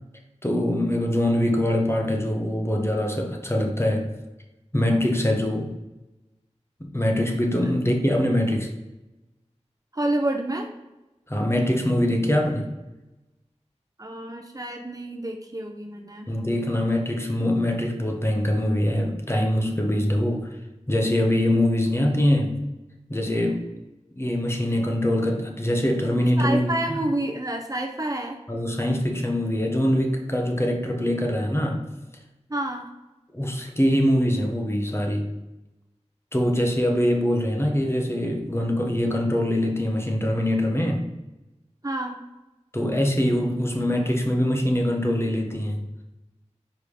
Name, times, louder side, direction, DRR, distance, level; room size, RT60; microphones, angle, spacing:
voice 1, 0.4-4.1 4.7-5.7 6.8-8.7 11.3-12.7 16.3-20.5 20.9-22.6 23.1-23.7 24.1-27.0 28.5-31.8 33.3-35.3 36.3-41.1 42.7-45.8, left 1 dB, 20° left, 1 dB, 1.1 m, -23 dB
voice 2, 9.9-10.7 14.0-16.3 26.4-28.4 32.5-32.9 41.8-42.3, right 1 dB, 30° right, 2 dB, 0.7 m, -29 dB
5.2 x 3.7 x 4.9 m, 1.0 s
wide cardioid pair, 40°, 12 cm